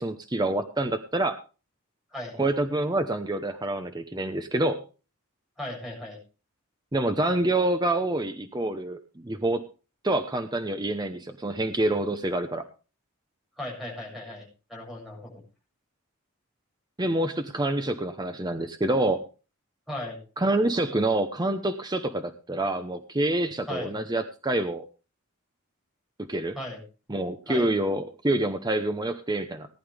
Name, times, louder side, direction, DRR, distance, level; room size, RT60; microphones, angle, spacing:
voice 1, 0.0-1.4 2.4-4.8 6.9-9.6 10.0-12.7 17.0-19.2 20.4-24.9 26.3-26.5 27.1-29.7, right 1 dB, 20° right, 8 dB, 0.8 m, -27 dB
voice 2, 5.6-6.2 13.6-15.4 19.9-20.2 23.7-24.0 26.6-26.8 27.5-27.7, left 1 dB, ahead, -1 dB, 7.5 m, -37 dB
18.5 x 11.0 x 3.4 m, 0.35 s
head